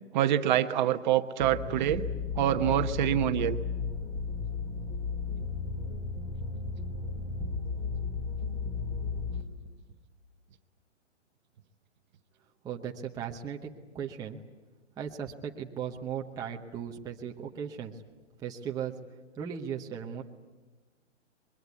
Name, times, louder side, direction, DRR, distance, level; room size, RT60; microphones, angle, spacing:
voice 1, 0.1-2.1 2.4-3.6, right 11 dB, 40° right, 9 dB, 1.0 m, -26 dB
sound 1, 1.4-9.4, left 4 dB, 20° left, 3.1 m, -34 dB
voice 2, 12.6-14.4 15.0-18.0 18.4-18.9 19.3-20.2, right 8 dB, 10° right, 0 dB, 0.9 m, -37 dB
23.5 x 22.5 x 9.4 m, 1.2 s
hypercardioid pair, 150°, 37 cm